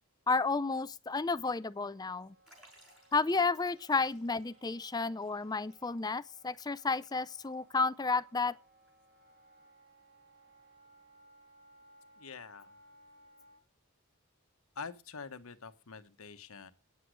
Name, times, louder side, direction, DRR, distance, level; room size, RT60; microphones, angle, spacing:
voice 1, 0.3-2.3 3.1-8.6, left 4 dB, 20° left, 0.5 m, -32 dB
Wind instrument woodwind instrument, 1.6-13.6, right 1 dB, 50° right, 4.7 m, -63 dB
Liquid, 2.5-7.5 7.8-7.9 8.9-9.0, equal, ahead, 5.9 m, -64 dB
voice 2, 12.2-12.7 14.7-16.7, left 5 dB, 75° left, 1.0 m, -46 dB
9.4 x 8.0 x 6.3 m
head